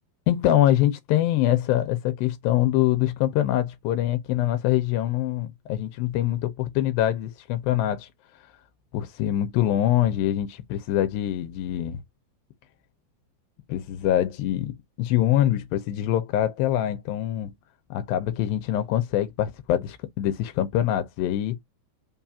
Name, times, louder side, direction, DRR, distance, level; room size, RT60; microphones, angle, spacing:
voice 1, 0.3-8.1 8.9-12.0 13.7-17.5 17.9-21.6, left 12 dB, 85° left, 2.5 m, -24 dB
5.4 x 2.4 x 2.7 m
omnidirectional pair, 4.1 m